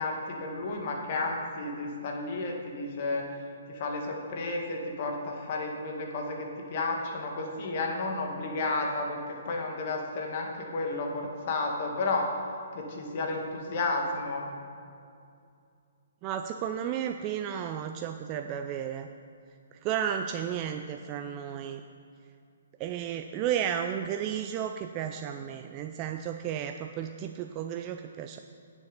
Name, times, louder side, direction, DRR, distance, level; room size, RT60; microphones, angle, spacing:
voice 1, 0.0-3.3 3.7-12.3 12.7-14.5, left 3 dB, 50° left, 1 dB, 1.9 m, -32 dB
voice 2, 16.2-19.1 19.8-21.8 22.8-28.4, right 9 dB, 30° right, 6 dB, 0.4 m, -33 dB
9.1 x 7.2 x 5.5 m, 2.4 s
hypercardioid pair, 140°, 0 cm